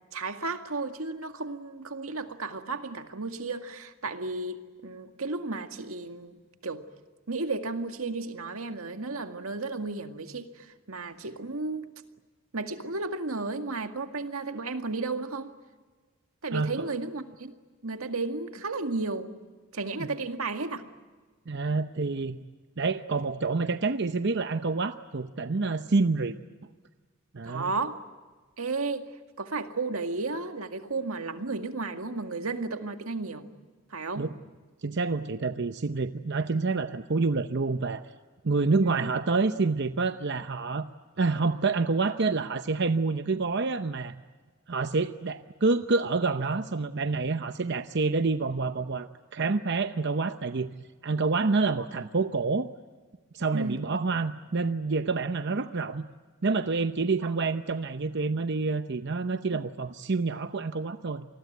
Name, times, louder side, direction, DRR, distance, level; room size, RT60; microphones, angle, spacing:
voice 1, 0.1-6.4 6.6-6.8 7.3-11.9 12.5-15.5 16.4-17.5 17.8-19.3 19.7-20.8 27.4-28.0 28.6-29.1 29.4-33.4 33.9-34.3 38.8-39.0 53.5-53.8 55.5-55.6 59.5-59.6, right 3 dB, 90° right, 6 dB, 2.0 m, -33 dB
voice 2, 21.5-22.4 22.8-26.4 27.3-27.7 34.2-34.3 34.8-38.0 38.4-40.9 41.2-44.2 44.7-50.7 51.0-52.7 53.3-56.0 56.4-61.3, right 3 dB, 55° right, 9 dB, 0.8 m, -28 dB
28.0 x 20.5 x 9.3 m, 1.4 s
head